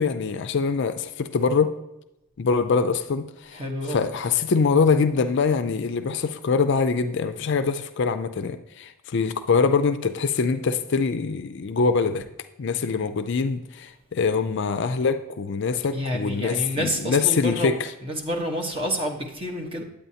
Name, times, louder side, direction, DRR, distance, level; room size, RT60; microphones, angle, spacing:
voice 1, 0.0-1.7 2.4-3.6 3.9-12.3 12.6-17.9, left 5 dB, 55° left, 10 dB, 0.4 m, -24 dB
voice 2, 3.5-4.0 15.9-17.7 18.0-19.8, equal, 25° right, 0 dB, 1.1 m, -29 dB
9.0 x 8.8 x 2.8 m, 0.90 s
head